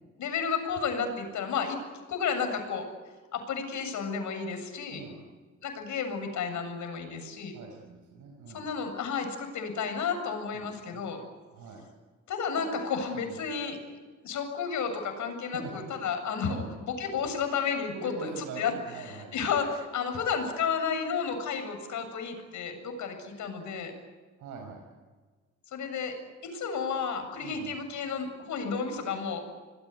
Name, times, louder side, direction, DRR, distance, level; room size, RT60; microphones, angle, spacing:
voice 1, 0.2-1.8 2.1-2.8 3.3-5.0 5.6-7.5 8.5-11.2 12.3-13.8 14.2-18.1 18.6-18.7 19.0-23.9 25.7-26.2 26.5-29.4, left 6 dB, 75° left, 6 dB, 7.5 m, -32 dB
voice 2, 7.5-8.6 10.5-11.0 11.5-11.9 12.6-12.7 13.2-13.3 15.5-16.0 16.4-16.7 17.9-19.5 24.4-24.9 27.4-27.8, right 3 dB, 80° right, 1 dB, 5.7 m, -42 dB
27.0 x 21.5 x 9.7 m, 1.4 s
cardioid pair, 90°, 30 cm